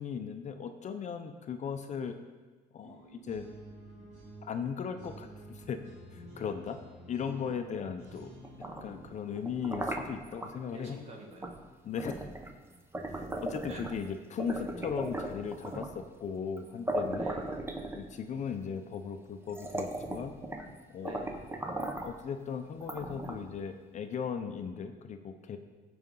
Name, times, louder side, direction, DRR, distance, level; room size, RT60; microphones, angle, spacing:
voice 1, 0.0-2.2 2.7-3.5 4.4-5.8 6.1-6.8 7.1-8.3 8.6-11.0 11.8-12.2 13.1-17.3 17.9-20.4 20.9-21.1 22.0-25.6, left 6 dB, 45° left, 7 dB, 0.6 m, -37 dB
sound 1, 2.8-9.2, right 1 dB, 90° right, 2.8 m, -51 dB
sound 2, 8.4-10.5 11.4-11.6 12.0-14.1 14.4-16.0 16.6-16.7 16.9-18.4 19.0-19.1 19.5-20.7 21.0-22.2 22.8-23.6, right 1 dB, 15° right, 0.9 m, -37 dB
voice 2, 10.7-11.5 13.7-13.9 14.5-14.7 17.1-17.6 21.0-21.6, right 1 dB, 40° right, 0 dB, 2.1 m, -48 dB
15.0 x 5.1 x 3.8 m, 1.3 s
cardioid pair, 110°, 17 cm